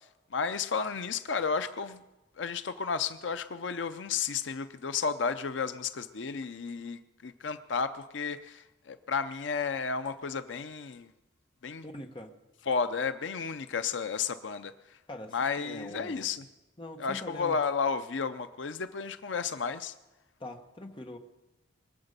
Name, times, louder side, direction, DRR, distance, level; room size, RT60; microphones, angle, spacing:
voice 1, 0.3-2.0 2.4-11.1 11.6-11.8 12.7-15.0 15.3-16.4 17.0-19.9, left 5 dB, 75° left, 10 dB, 0.6 m, -32 dB
voice 2, 11.8-12.3 15.1-16.2 16.8-17.6 20.4-21.2, left 1 dB, 25° left, 3 dB, 1.3 m, -43 dB
23.5 x 8.0 x 6.7 m, 1.0 s
head